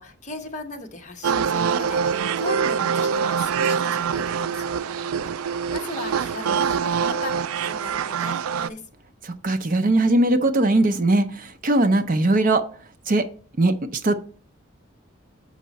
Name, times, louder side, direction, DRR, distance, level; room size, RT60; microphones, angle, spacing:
voice 1, 0.0-4.7 5.3-8.8 11.8-11.9, left 3 dB, 35° left, 4 dB, 1.0 m, -37 dB
sound 1, 1.2-8.7, right 6 dB, 90° right, 0.3 m, -24 dB
voice 2, 9.2-12.7 13.1-13.3 13.6-14.2, right 2 dB, 40° right, 9 dB, 0.5 m, -20 dB
7.3 x 5.5 x 4.0 m, 0.42 s
head